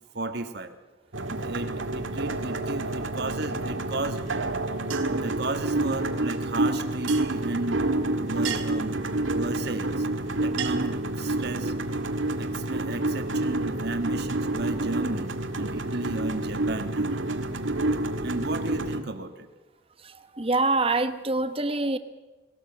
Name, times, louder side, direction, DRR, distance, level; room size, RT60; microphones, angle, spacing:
voice 1, 0.1-0.8 1.3-4.2 5.1-7.8 8.2-10.1 10.4-11.7 12.4-17.1 18.2-19.5, right 2 dB, 60° right, 8 dB, 1.7 m, -33 dB
sound 1, 1.1-19.0, right 2 dB, 85° right, 1.9 m, -28 dB
voice 2, 20.0-22.0, right 3 dB, 30° right, 11 dB, 1.1 m, -25 dB
20.5 x 17.5 x 7.6 m, 1.2 s
head